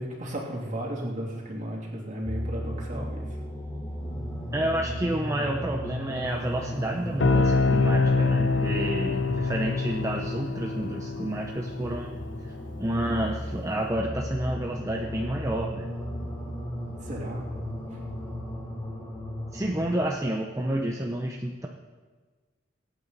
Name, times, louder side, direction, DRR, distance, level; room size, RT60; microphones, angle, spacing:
voice 1, 0.0-3.3 17.0-17.5 17.9-18.0, right 1 dB, 40° right, -2 dB, 3.1 m, -34 dB
sound 1, 2.2-20.1, equal, 15° left, 2.3 m, -35 dB
voice 2, 4.5-12.2 12.5-15.9 19.5-21.7, right 1 dB, 15° right, 0 dB, 0.8 m, -30 dB
sound 2, 7.2-12.8, left 3 dB, 65° left, 0.7 m, -26 dB
23.0 x 9.2 x 4.1 m, 1.4 s
head